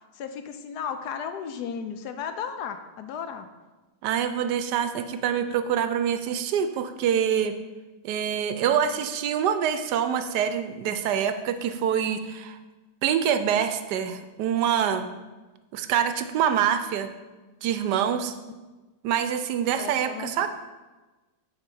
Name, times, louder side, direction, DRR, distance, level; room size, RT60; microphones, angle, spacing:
voice 1, 0.2-3.5 19.8-20.5, left 7 dB, 75° left, 8 dB, 1.1 m, -34 dB
voice 2, 4.0-7.5 8.0-12.6 13.0-15.1 15.7-17.1 17.6-18.3 19.0-20.5, right 8 dB, 80° right, 9 dB, 1.2 m, -25 dB
8.7 x 4.2 x 5.3 m, 1.2 s
omnidirectional pair, 1.8 m